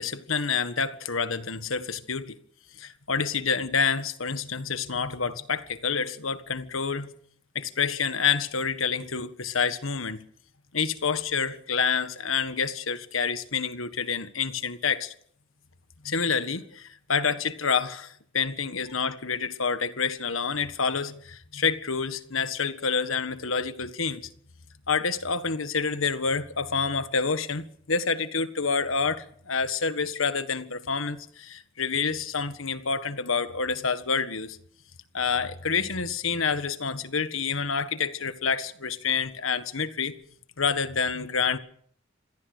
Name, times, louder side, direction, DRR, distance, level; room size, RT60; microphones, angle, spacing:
voice 1, 0.0-2.4 2.8-7.1 7.5-10.2 10.7-15.1 16.0-24.2 24.9-34.6 35.1-40.1 40.6-41.6, left 5 dB, 80° left, 1.6 m, -28 dB
26.5 x 17.0 x 6.8 m
head